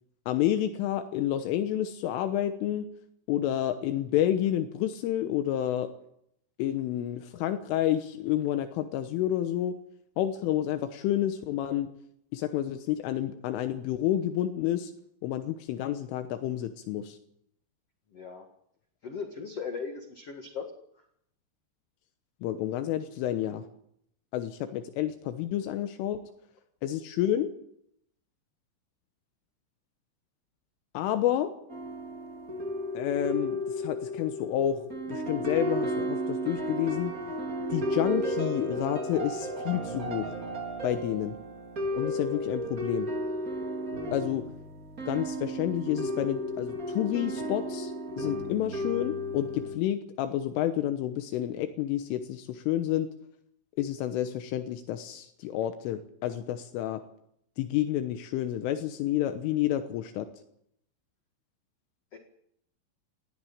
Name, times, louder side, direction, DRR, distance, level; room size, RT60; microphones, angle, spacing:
voice 1, 0.3-2.9 3.3-5.9 6.6-9.8 10.2-11.9 12.3-14.9 15.2-17.2 22.4-23.6 24.3-26.2 26.8-27.5 31.0-31.5 33.0-37.1 37.7-40.3 40.8-41.4 42.0-43.1 44.1-44.5 45.1-53.1 53.8-57.0 57.6-60.3, left 12 dB, 80° left, 8 dB, 3.5 m, -29 dB
voice 2, 18.1-18.5 19.0-20.7 62.1-62.2, left 5 dB, 65° left, 4 dB, 1.5 m, -38 dB
sound 1, 31.7-49.8, equal, 35° right, 1.5 m, -33 dB
19.0 x 16.0 x 8.8 m, 0.72 s
omnidirectional pair, 5.7 m